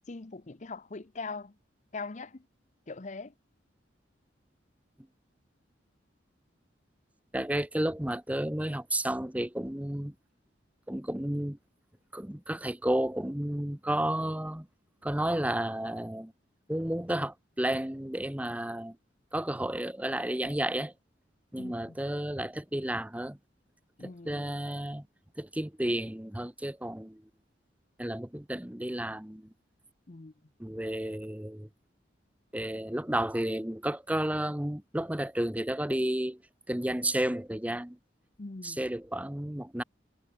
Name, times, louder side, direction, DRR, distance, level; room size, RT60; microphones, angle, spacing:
voice 1, 0.1-1.5 1.9-2.5 2.9-3.3 21.6-22.0 24.0-24.5 30.1-30.3 38.4-38.9, left 3 dB, 40° left, 0.7 m, -41 dB
voice 2, 7.3-10.1 10.9-11.6 12.1-14.7 15.0-16.3 16.7-19.0 19.3-20.9 21.5-23.4 24.0-25.0 25.4-27.2 28.0-29.5 30.6-31.7 32.5-36.4 36.7-38.0 38.6-39.8, right 1 dB, 10° right, 0.9 m, -32 dB
head